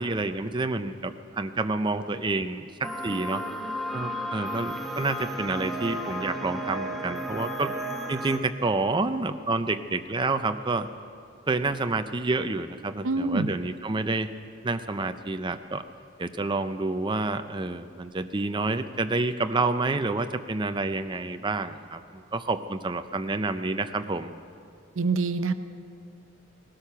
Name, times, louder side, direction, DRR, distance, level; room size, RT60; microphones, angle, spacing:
voice 1, 0.0-3.4 3.9-7.7 8.1-10.9 11.5-14.3 14.6-15.8 16.2-24.3, right 3 dB, 20° right, 9 dB, 0.5 m, -29 dB
sound 1, 2.8-8.4, equal, ahead, 0.9 m, -33 dB
voice 2, 13.0-13.5 25.0-25.5, right 3 dB, 70° right, 10 dB, 0.7 m, -25 dB
19.0 x 12.5 x 5.8 m, 2.4 s
head